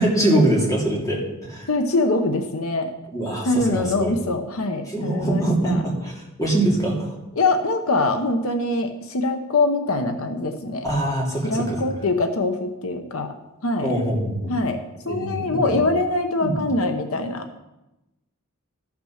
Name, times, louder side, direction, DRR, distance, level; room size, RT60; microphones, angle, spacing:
voice 1, 0.0-1.7 3.1-4.1 4.9-6.1 6.4-7.1 10.8-11.8 13.8-14.5 15.0-15.8 16.4-16.6, right 1 dB, 15° left, -4 dB, 3.0 m, -23 dB
voice 2, 1.7-2.9 3.4-5.9 7.4-10.9 11.4-13.3 13.6-13.9 14.5-17.6, left 2 dB, 80° left, 6 dB, 0.9 m, -23 dB
14.0 x 6.0 x 6.5 m, 0.98 s
head